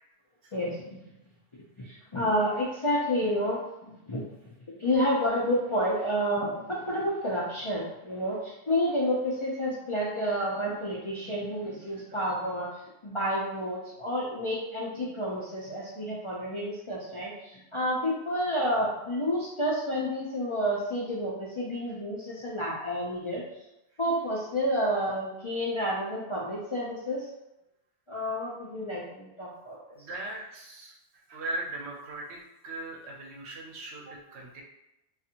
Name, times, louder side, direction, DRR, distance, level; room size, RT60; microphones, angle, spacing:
voice 1, 2.1-4.2 4.8-12.7 13.0-23.4 24.0-27.2 28.1-29.8, equal, 40° left, -7 dB, 0.4 m, -30 dB
voice 2, 30.0-30.9 31.3-34.6, right 2 dB, 75° right, -1 dB, 0.9 m, -39 dB
2.5 x 2.4 x 2.8 m, 0.88 s
omnidirectional pair, 1.1 m